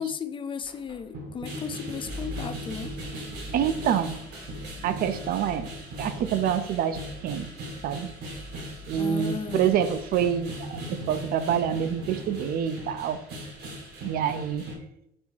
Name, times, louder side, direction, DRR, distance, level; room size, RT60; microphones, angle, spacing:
voice 1, 0.0-2.9 9.0-9.8, left 6 dB, 30° left, 10 dB, 0.3 m, -35 dB
sound 1, 0.7-14.8, right 1 dB, 85° right, 1.3 m, -39 dB
sound 2, 2.0-13.0, left 1 dB, 65° left, 0.7 m, -45 dB
voice 2, 3.5-4.2 4.8-5.7 6.0-7.5 7.8-8.1 8.9-13.2 14.0-14.7, right 9 dB, 60° right, 11 dB, 0.4 m, -27 dB
4.2 x 2.7 x 4.4 m, 0.81 s
cardioid pair, 110°, 17 cm